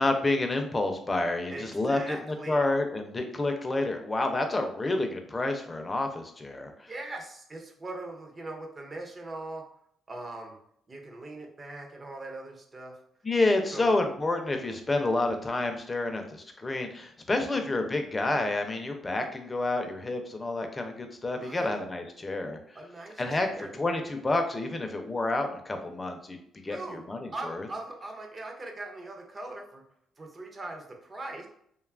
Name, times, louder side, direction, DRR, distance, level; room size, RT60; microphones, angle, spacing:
voice 1, 0.0-2.2 2.5-6.9 13.2-22.6 23.2-26.4 26.6-26.8 27.1-27.7, left 2 dB, 25° left, 5 dB, 0.4 m, -29 dB
voice 2, 1.5-2.6 6.9-9.6 10.1-10.6 10.9-13.0 13.7-13.9 17.5-17.6 21.4-21.8 22.7-23.7 26.7-27.0 27.3-29.8 30.2-31.5, right 2 dB, 30° right, 2 dB, 0.6 m, -41 dB
2.7 x 2.3 x 2.4 m, 0.68 s
cardioid pair, 90°, 0 cm